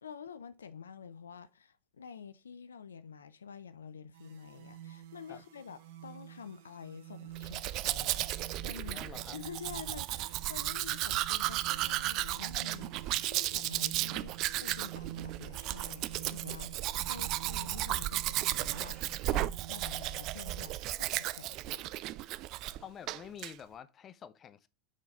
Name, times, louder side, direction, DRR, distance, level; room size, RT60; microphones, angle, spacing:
voice 1, 0.0-9.0 9.3-21.9, left 7 dB, 85° left, 0.4 m, -48 dB
sound 1, 4.1-20.7, right 12 dB, 65° right, 0.8 m, -49 dB
Domestic sounds home sounds, 7.4-22.8 23.1-23.5, right 15 dB, 50° right, 0.3 m, -34 dB
voice 2, 8.9-9.4 19.3-19.5 20.9-21.0 22.8-24.7, left 8 dB, 35° left, 0.6 m, -48 dB
sound 2, 13.5-19.4, left 5 dB, 60° left, 3.0 m, -64 dB
6.2 x 4.0 x 4.1 m
hypercardioid pair, 90°, 0 cm